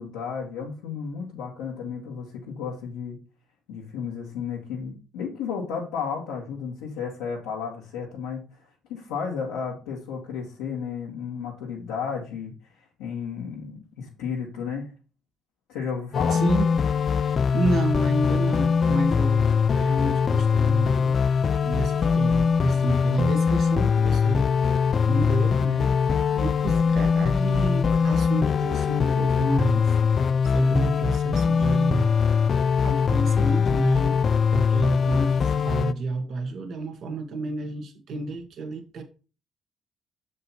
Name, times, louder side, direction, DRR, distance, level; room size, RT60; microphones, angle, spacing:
voice 1, 0.0-3.2 3.7-8.6 8.9-14.9 15.7-16.4, left 6 dB, 85° left, 2.0 m, -33 dB
sound 1, 16.1-35.9, left 6 dB, 50° left, 0.3 m, -22 dB
voice 2, 16.3-16.7 17.2-21.2 21.6-24.5 25.0-32.1 32.8-34.2 34.5-39.0, right 2 dB, 60° right, 1.6 m, -30 dB
6.9 x 5.3 x 4.4 m
supercardioid pair, 60°, 0 cm